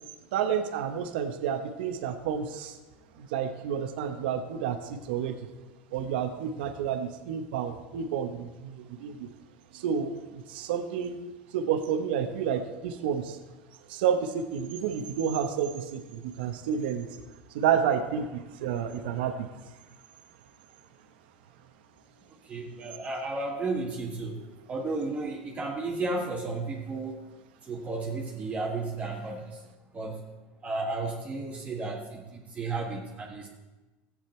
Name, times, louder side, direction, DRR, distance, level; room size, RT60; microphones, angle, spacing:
voice 1, 0.3-2.8 3.2-5.3 5.9-9.3 9.7-11.2 11.5-13.4 13.9-17.1 17.5-19.5, right 8 dB, 85° right, 8 dB, 1.0 m, -30 dB
voice 2, 22.5-24.4 24.7-27.2 27.7-29.5 29.9-30.2 30.6-33.5, right 3 dB, 25° right, -1 dB, 1.6 m, -33 dB
14.0 x 8.9 x 4.5 m, 1.1 s
supercardioid pair, 120°, 5 cm